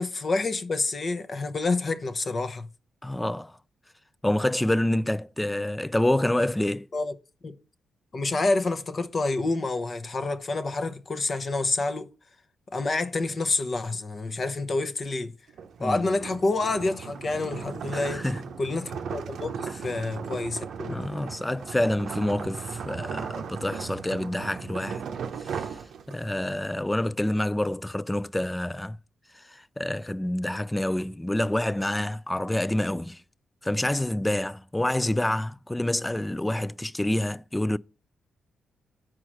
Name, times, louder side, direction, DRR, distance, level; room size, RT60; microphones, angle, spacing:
voice 1, 0.0-2.7 6.9-7.1 7.4-7.6 8.1-12.1 12.7-15.3 15.8-18.2 18.6-21.0, left 3 dB, 40° left, 0.8 m, -28 dB
voice 2, 3.0-3.6 4.2-6.9 15.8-16.0 17.9-18.4 20.9-25.0 25.4-25.7 26.1-29.0 29.3-33.2 33.6-37.8, left 1 dB, 10° left, 0.3 m, -27 dB
sound 1, 15.5-26.4, right 6 dB, 70° right, 0.7 m, -37 dB
6.1 x 4.8 x 6.2 m
cardioid pair, 80°, 0 cm